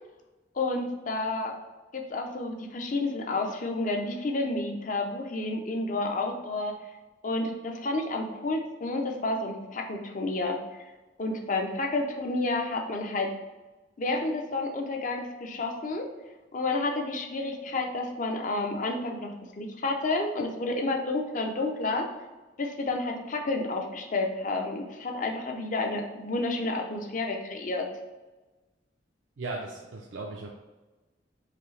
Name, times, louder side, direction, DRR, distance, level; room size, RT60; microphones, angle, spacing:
voice 1, 0.5-1.6 1.9-6.7 7.2-10.6 11.2-13.3 14.0-16.1 16.5-22.1 22.6-27.9, left 2 dB, 45° left, 3 dB, 0.6 m, -30 dB
voice 2, 29.4-30.5, right 3 dB, 90° right, -2 dB, 0.5 m, -37 dB
5.0 x 2.8 x 3.2 m, 1.2 s
head